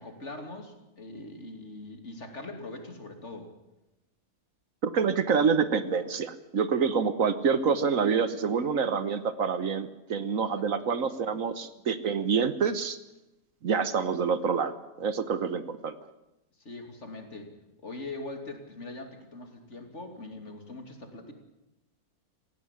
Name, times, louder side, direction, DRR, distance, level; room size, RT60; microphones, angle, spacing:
voice 1, 0.0-3.5 10.6-10.7 16.6-17.5 17.8-21.3, left 2 dB, 50° left, 5 dB, 3.1 m, -42 dB
voice 2, 4.8-13.0 13.6-15.9, right 6 dB, 60° right, 12 dB, 1.5 m, -27 dB
18.0 x 15.5 x 9.7 m, 0.93 s
omnidirectional pair, 1.6 m